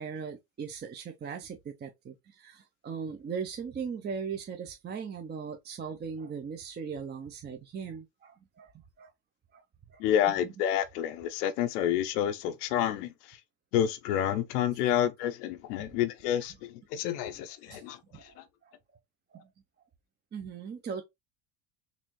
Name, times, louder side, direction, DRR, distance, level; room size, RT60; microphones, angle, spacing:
voice 1, 0.0-8.7 9.0-9.1 9.5-9.6 9.9-10.0 17.2-17.3 17.7-18.4 18.6-18.7 19.3-19.5 20.3-21.0, right 6 dB, 20° right, 0.6 m, -39 dB
voice 2, 10.0-13.4 13.7-18.4, left 10 dB, 80° left, 0.7 m, -29 dB
4.1 x 2.6 x 3.0 m
supercardioid pair, 95°, 46 cm